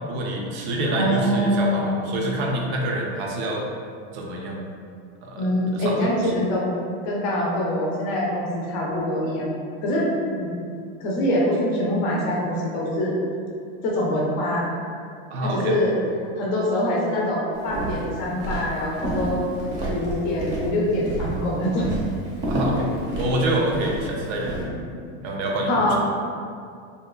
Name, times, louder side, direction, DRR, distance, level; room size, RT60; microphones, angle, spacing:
voice 1, 0.1-3.6 4.1-4.7 5.2-6.3 15.3-15.7 22.5-22.9 23.2-24.6 25.2-26.0, right 1 dB, 80° right, -1 dB, 0.6 m, -27 dB
voice 2, 0.9-2.0 5.4-6.8 7.0-9.5 9.8-10.1 10.4-10.5 11.0-13.1 13.8-14.6 15.4-16.0 16.4-19.5 19.9-21.9 25.7-26.0, left 1 dB, 40° left, -3 dB, 0.5 m, -24 dB
Walk footsteps, 17.6-24.7, right 1 dB, 35° right, 0.6 m, -30 dB
2.8 x 2.2 x 2.3 m, 2.3 s
supercardioid pair, 165°, 33 cm